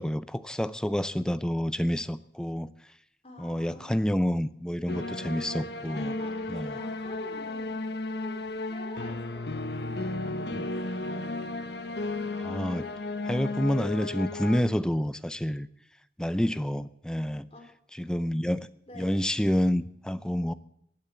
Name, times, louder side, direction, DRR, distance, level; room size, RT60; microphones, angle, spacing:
voice 1, 0.0-2.7 3.4-6.2 6.5-6.7 10.5-10.6 12.4-12.9 13.2-15.7 16.2-17.5 18.0-18.7 19.0-20.5, equal, 5° left, 14 dB, 0.5 m, -28 dB
voice 2, 3.2-4.0 6.2-11.3 17.5-17.6 18.9-19.2, left 1 dB, 35° left, 3 dB, 3.6 m, -48 dB
sound 1, 4.9-14.6, left 2 dB, 75° left, 1.2 m, -34 dB
16.0 x 9.0 x 8.1 m, 0.74 s
head